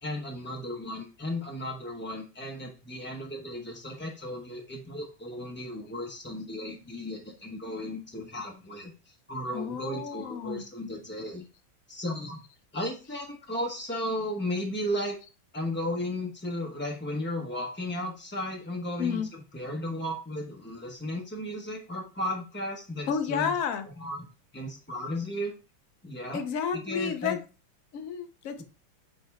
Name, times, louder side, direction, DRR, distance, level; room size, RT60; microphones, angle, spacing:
voice 1, 0.0-11.4 11.9-12.4 12.7-15.2 15.5-23.6 23.9-25.5 26.0-26.4 26.7-27.4, left 1 dB, 15° left, 0.3 m, -35 dB
voice 2, 9.5-10.7 19.0-19.3 23.1-23.9 26.3-27.4 27.9-28.6, left 7 dB, 65° left, 0.8 m, -31 dB
9.0 x 3.3 x 3.5 m
omnidirectional pair, 2.2 m